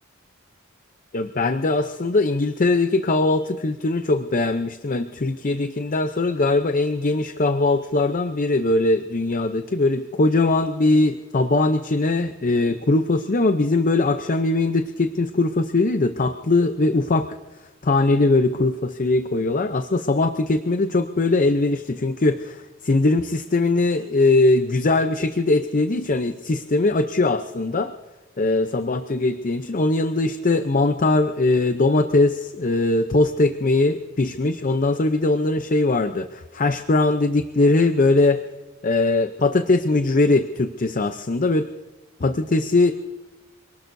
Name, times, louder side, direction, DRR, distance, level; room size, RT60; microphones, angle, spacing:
voice 1, 1.1-17.3 17.8-27.9 28.4-38.4 38.8-41.7 42.2-42.9, left 2 dB, 40° left, 8 dB, 0.6 m, -21 dB
27.0 x 19.0 x 2.7 m, 1.2 s
head